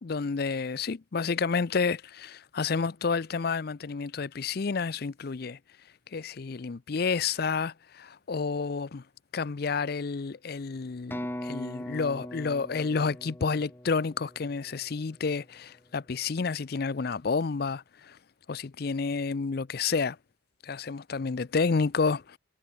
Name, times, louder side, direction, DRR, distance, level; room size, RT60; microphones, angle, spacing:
voice 1, 0.0-5.6 6.1-9.0 9.3-18.2 18.5-20.2 20.6-22.4, left 4 dB, 50° left, 0.5 m, -30 dB
sound 1, 11.1-14.9, left 1 dB, 10° left, 0.9 m, -40 dB
head